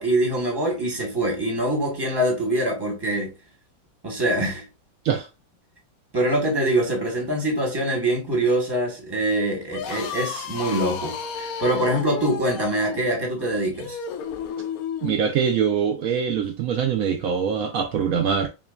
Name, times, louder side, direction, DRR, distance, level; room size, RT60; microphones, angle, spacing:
voice 1, 0.0-3.3 4.0-4.6 6.1-14.0, right 1 dB, 15° right, 1.0 m, -24 dB
sound 1, 9.6-15.3, left 7 dB, 65° left, 0.9 m, -33 dB
voice 2, 15.0-18.5, right 7 dB, 85° right, 0.7 m, -23 dB
5.9 x 2.3 x 2.3 m
omnidirectional pair, 2.0 m